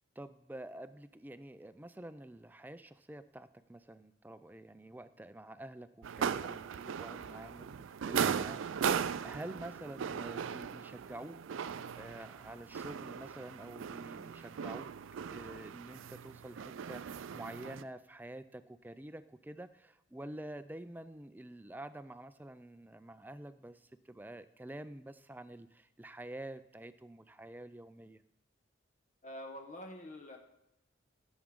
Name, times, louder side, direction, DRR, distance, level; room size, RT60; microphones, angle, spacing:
voice 1, 0.2-14.9 15.2-28.2, right 1 dB, 10° right, 13 dB, 0.3 m, -48 dB
sound 1, 6.0-17.8, right 7 dB, 80° right, 0.4 m, -38 dB
voice 2, 29.2-30.4, left 1 dB, 40° left, 3 dB, 0.9 m, -46 dB
15.5 x 7.2 x 3.7 m, 0.86 s
head